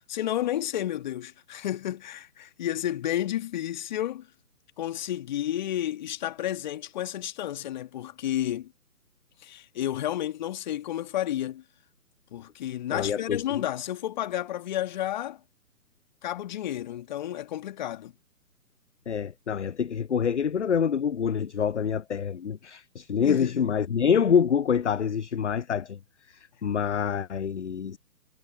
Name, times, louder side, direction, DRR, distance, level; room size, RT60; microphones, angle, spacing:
voice 1, 0.1-4.3 4.8-8.7 9.4-11.6 12.3-15.4 16.2-18.1 23.2-23.7, left 12 dB, 30° left, 1.7 m, -31 dB
voice 2, 12.9-13.4 19.1-26.0 26.3-28.0, left 7 dB, 50° left, 0.4 m, -26 dB
figure-of-eight pair, 140°, 48 cm